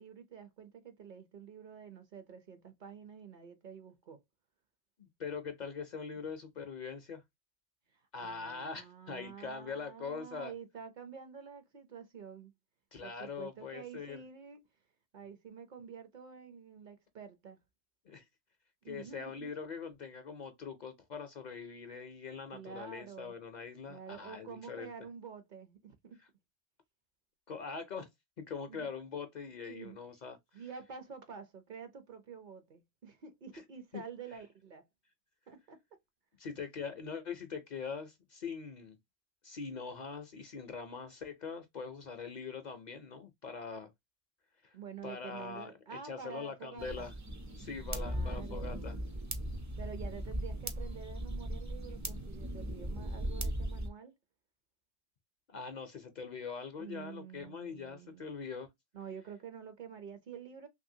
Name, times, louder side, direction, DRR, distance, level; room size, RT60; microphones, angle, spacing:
voice 1, 0.0-4.2 6.2-6.3 7.9-12.5 13.0-14.6 15.1-17.6 18.8-19.5 22.5-23.4 23.9-26.2 28.7-28.9 29.7-30.0 30.5-34.9 35.5-35.8 44.7-47.1 48.0-49.0 49.8-54.1 56.8-58.3 58.9-60.7, right 6 dB, 55° right, 0.7 m, -48 dB
voice 2, 5.0-7.2 8.1-10.5 12.9-14.2 18.1-18.2 18.9-24.9 27.5-28.1 28.4-30.4 33.9-34.0 36.4-39.0 39.4-43.9 44.6-44.8 45.0-47.1 47.6-49.0 55.5-58.7, left 5 dB, 55° left, 0.6 m, -42 dB
sound 1, 46.8-53.9, right 1 dB, 30° right, 0.3 m, -38 dB
3.0 x 2.7 x 2.6 m
omnidirectional pair, 1.1 m